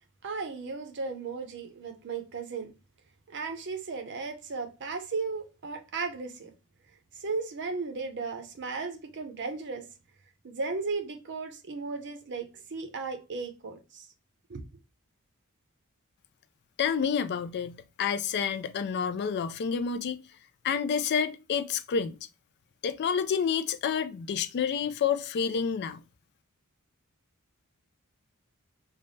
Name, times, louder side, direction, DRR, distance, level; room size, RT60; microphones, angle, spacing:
voice 1, 0.2-2.7 3.3-6.5 7.2-9.8 10.4-14.1 14.5-14.6, right 4 dB, 55° right, 0.7 m, -35 dB
voice 2, 16.8-20.2 20.6-22.2 22.8-26.0, left 7 dB, 50° left, 0.3 m, -29 dB
3.3 x 2.1 x 3.9 m
head